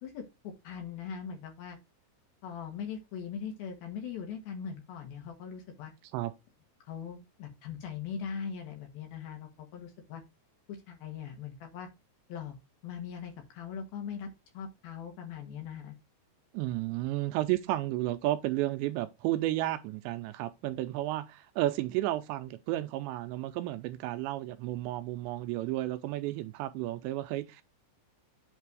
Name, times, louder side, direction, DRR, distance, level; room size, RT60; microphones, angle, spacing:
voice 1, 0.0-1.8 2.4-5.9 6.9-10.2 10.7-11.9 12.3-12.6 12.8-14.3 14.5-15.9, left 7 dB, 70° left, 2.7 m, -40 dB
voice 2, 16.5-27.6, right 15 dB, 85° right, 2.7 m, -32 dB
8.3 x 3.3 x 4.7 m
omnidirectional pair, 5.2 m